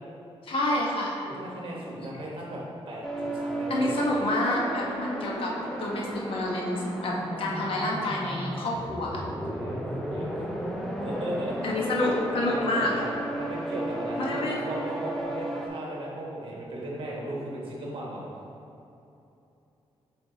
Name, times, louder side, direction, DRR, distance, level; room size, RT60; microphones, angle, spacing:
voice 1, 0.4-1.2 2.0-2.1 3.7-5.5 5.8-9.2 11.6-12.9 14.2-14.6, left 1 dB, 60° left, -3 dB, 1.0 m, -28 dB
voice 2, 1.2-4.0 9.2-9.8 10.1-11.7 12.5-18.2, right 1 dB, 55° right, -3 dB, 1.3 m, -36 dB
sound 1, 3.0-15.7, right 1 dB, 5° left, 0.5 m, -33 dB
7.2 x 3.5 x 3.9 m, 2.8 s
wide cardioid pair, 150°, 10 cm